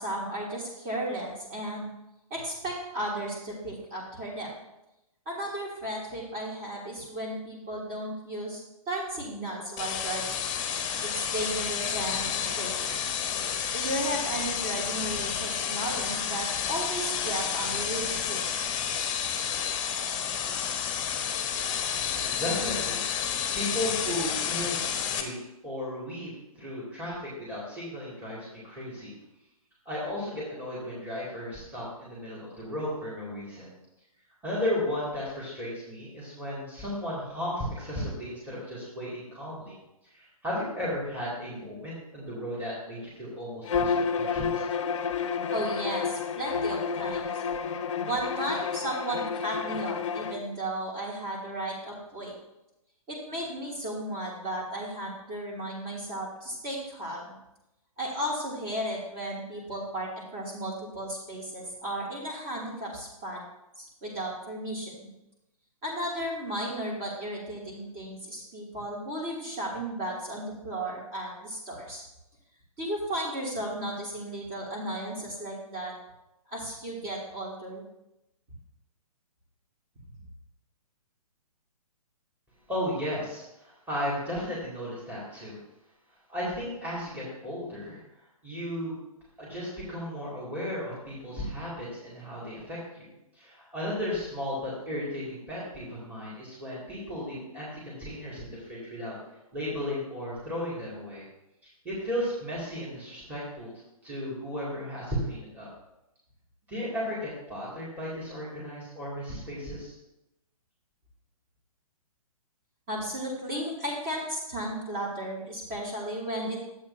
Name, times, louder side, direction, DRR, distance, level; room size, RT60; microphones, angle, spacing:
voice 1, 0.0-1.9 2.3-4.5 5.2-10.3 11.0-12.9 13.7-18.4 45.5-47.4 48.1-52.3 53.1-57.4 58.0-63.4 63.8-65.1 65.8-72.0 72.8-75.9 76.5-77.8 112.9-116.6, right 1 dB, 30° right, -4 dB, 2.9 m, -34 dB
sound 1, 9.8-25.2, left 8 dB, 20° left, 0.9 m, -30 dB
voice 2, 22.3-25.4 25.6-29.1 29.9-33.7 34.4-39.7 40.1-44.6 82.7-85.6 86.3-88.0 88.4-88.9 89.4-93.1 93.3-99.2 99.5-101.3 101.8-103.7 104.0-105.7 106.7-109.9, left 1 dB, 10° right, -8 dB, 2.6 m, -35 dB
Bowed string instrument, 43.6-50.4, left 6 dB, 55° left, 0.6 m, -30 dB
11.5 x 7.8 x 2.8 m, 0.90 s
figure-of-eight pair, 125°, 19 cm